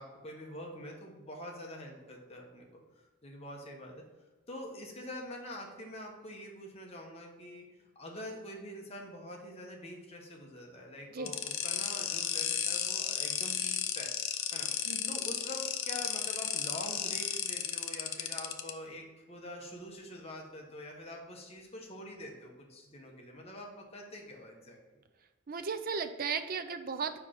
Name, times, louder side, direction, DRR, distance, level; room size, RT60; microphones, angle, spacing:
voice 1, 0.0-2.8 3.2-4.0 4.5-7.6 7.9-14.1 14.5-14.7 15.1-24.8, left 1 dB, 30° left, 0 dB, 1.1 m, -45 dB
sound 1, 11.3-18.7, left 9 dB, 90° left, 0.6 m, -34 dB
voice 2, 14.9-15.2 25.5-27.2, right 5 dB, 45° right, 8 dB, 0.5 m, -36 dB
5.0 x 4.6 x 5.8 m, 1.2 s
head